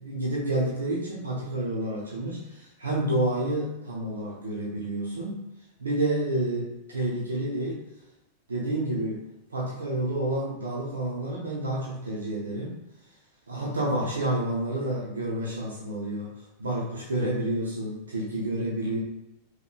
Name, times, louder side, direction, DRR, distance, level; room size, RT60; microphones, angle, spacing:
voice 1, 0.0-5.5 5.8-6.6 6.9-7.8 8.5-9.2 9.5-12.7 13.5-19.0, right 1 dB, 70° right, -4 dB, 0.8 m, -29 dB
5.1 x 3.1 x 2.3 m, 0.95 s
figure-of-eight pair, 90°, 0 cm